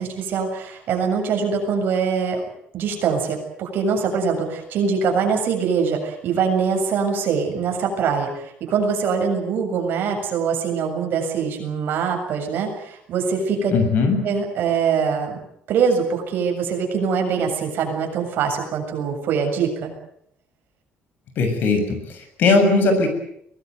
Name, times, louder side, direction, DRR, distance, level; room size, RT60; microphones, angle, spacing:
voice 1, 0.0-2.4 2.7-13.7 14.2-15.4 15.7-19.9, right 6 dB, 55° right, 3 dB, 7.3 m, -23 dB
voice 2, 13.7-14.2 21.4-23.1, left 3 dB, 50° left, 7 dB, 7.0 m, -19 dB
23.5 x 19.0 x 9.4 m, 0.73 s
cardioid pair, 170°, 4 cm